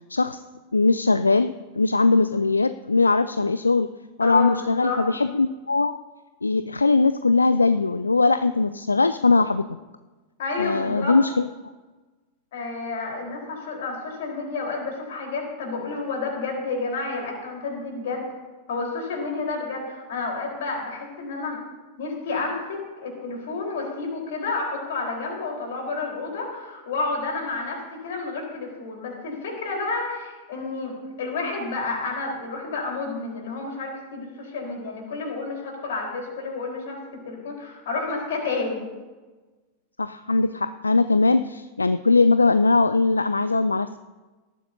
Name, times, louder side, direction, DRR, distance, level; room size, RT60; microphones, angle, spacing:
voice 1, 0.1-0.4 0.7-3.9 4.2-5.9 6.4-9.7 10.6-11.5 40.0-44.0, left 3 dB, 80° left, 12 dB, 0.3 m, -20 dB
voice 2, 4.2-5.0 10.4-11.1 12.5-18.2 18.7-21.6 22.0-37.0 37.2-38.8, left 3 dB, 55° left, 0 dB, 4.1 m, -30 dB
18.5 x 13.0 x 2.7 m, 1.2 s
figure-of-eight pair, 90°, 0 cm